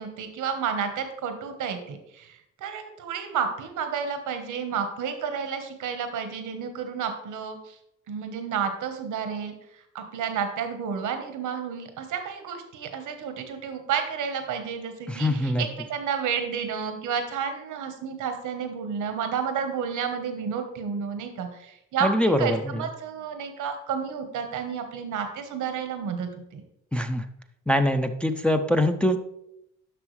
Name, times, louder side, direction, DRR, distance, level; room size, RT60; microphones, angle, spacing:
voice 1, 0.0-7.7 8.1-9.5 9.9-26.6, right 7 dB, 80° right, 7 dB, 1.2 m, -31 dB
voice 2, 15.1-15.6 22.0-22.8 26.9-27.3 27.7-29.2, left 1 dB, 5° left, 5 dB, 0.6 m, -23 dB
11.0 x 6.1 x 3.2 m, 0.81 s
cardioid pair, 90°, 30 cm